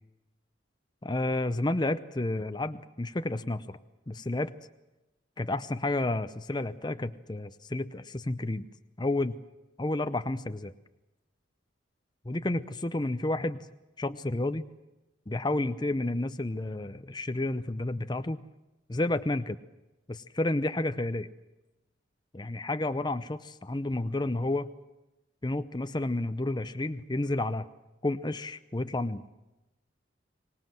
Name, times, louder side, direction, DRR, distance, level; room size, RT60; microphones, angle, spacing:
voice 1, 1.0-3.8 4.1-4.5 5.4-8.7 9.0-9.3 9.8-10.7 12.3-13.7 14.0-14.7 15.3-18.4 18.9-19.6 20.1-21.2 22.3-24.7 25.4-27.7 28.0-29.2, left 2 dB, 25° left, 11 dB, 0.7 m, -31 dB
25.0 x 20.0 x 7.7 m, 1.0 s
head